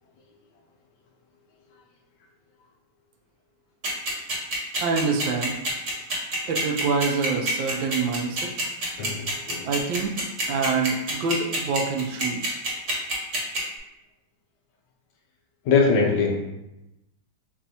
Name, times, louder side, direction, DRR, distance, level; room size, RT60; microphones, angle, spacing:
sound 1, 3.8-13.6, right 1 dB, 40° right, 1.3 m, -27 dB
voice 1, 4.8-5.6 6.5-8.7 9.6-10.1 10.5-12.6, right 4 dB, 75° right, 2 dB, 1.3 m, -26 dB
voice 2, 9.0-9.7 15.7-16.4, left 4 dB, 70° left, 1 dB, 1.2 m, -22 dB
6.9 x 2.6 x 2.8 m, 0.93 s
omnidirectional pair, 2.2 m